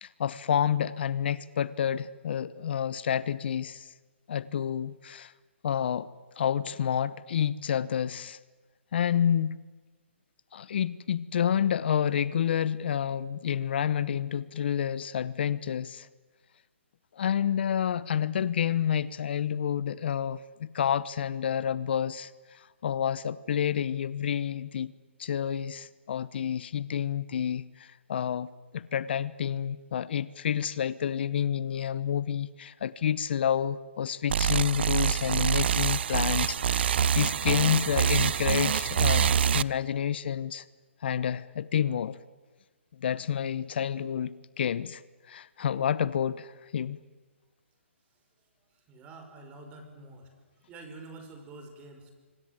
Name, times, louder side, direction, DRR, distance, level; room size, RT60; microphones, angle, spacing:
voice 1, 0.0-3.9 4.3-5.3 5.6-6.1 6.4-8.4 8.9-9.6 10.5-16.1 17.1-24.9 25.2-40.6 41.0-42.2 43.0-45.0 45.3-47.0, left 9 dB, 55° left, 17 dB, 0.9 m, -29 dB
sound 1, 34.3-39.6, right 8 dB, 55° right, 0.8 m, -25 dB
voice 2, 48.7-50.3 50.6-52.1, right 2 dB, 20° right, 6 dB, 5.5 m, -47 dB
26.0 x 25.5 x 9.1 m, 1.3 s
hypercardioid pair, 150°, 7 cm